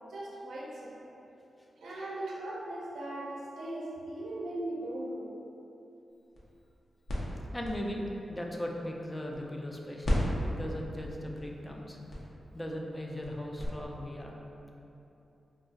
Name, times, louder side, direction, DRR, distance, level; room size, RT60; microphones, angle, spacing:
voice 1, 0.1-1.1 1.8-5.4, right 1 dB, 80° right, -4 dB, 0.4 m, -39 dB
sound 1, 6.1-9.7 10.0-13.7, equal, 65° left, 0.7 m, -36 dB
voice 2, 7.5-8.0 8.3-12.0 12.5-14.4, equal, 20° left, 0 dB, 0.4 m, -38 dB
2.3 x 2.3 x 3.9 m, 2.9 s
cardioid pair, 65°, 0 cm